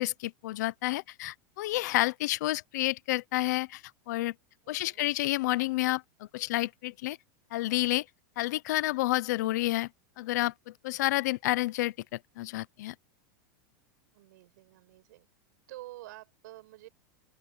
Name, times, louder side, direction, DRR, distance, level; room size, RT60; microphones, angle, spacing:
voice 1, 0.0-3.8 4.1-4.3 4.7-6.0 6.3-7.2 7.5-8.0 8.4-9.9 10.2-10.5 10.8-11.9 12.4-12.9, left 18 dB, 60° left, 0.8 m, -29 dB
voice 2, 4.6-5.1 14.1-15.3 15.7-16.9, right 17 dB, 65° right, 6.0 m, -49 dB
open air
supercardioid pair, 170°, 10 cm